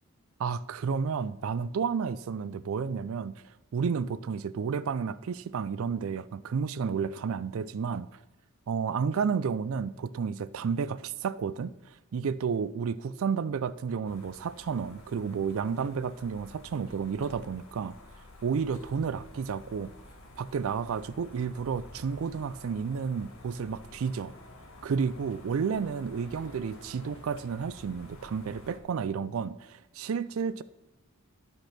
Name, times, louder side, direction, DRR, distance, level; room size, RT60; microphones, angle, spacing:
voice 1, 0.4-3.3 3.7-8.1 8.7-17.9 18.4-19.9 20.4-24.3 24.8-30.6, right 6 dB, 65° right, 0.4 m, -31 dB
sound 1, 14.0-28.8, left 1 dB, 65° left, 1.4 m, -51 dB
10.5 x 5.4 x 5.8 m
head